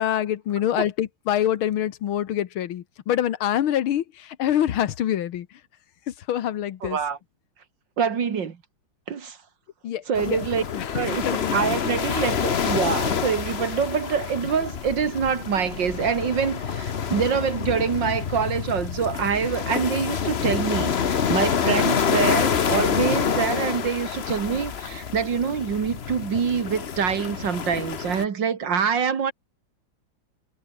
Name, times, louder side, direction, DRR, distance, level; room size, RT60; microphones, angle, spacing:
voice 1, 0.0-5.5 6.3-7.0 9.8-10.9 11.2-11.8, left 11 dB, 85° left, 2.0 m, -25 dB
voice 2, 6.8-7.2 8.0-8.6 9.1-9.4 10.1-10.6 10.9-29.3, right 6 dB, 65° right, 2.5 m, -25 dB
sound 1, 10.1-28.2, left 7 dB, 40° left, 0.9 m, -27 dB
omnidirectional pair, 2.2 m